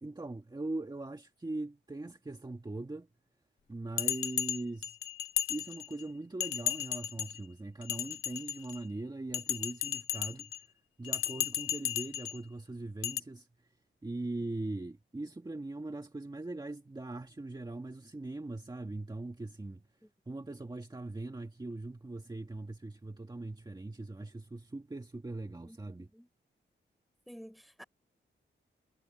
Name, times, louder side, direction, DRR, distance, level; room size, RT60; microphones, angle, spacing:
voice 1, 0.0-3.1 3.7-5.0 5.5-10.6 11.0-13.7 14.0-19.8 20.2-26.1, right 2 dB, 20° right, 1.7 m, -41 dB
Bell, 4.0-6.0 6.4-7.4 7.8-8.8 9.3-10.6 11.0-12.4 13.0-13.2, left 11 dB, 85° left, 0.4 m, -34 dB
voice 2, 25.7-26.3 27.3-27.8, equal, ahead, 4.1 m, -51 dB
wide cardioid pair, 95°, 21 cm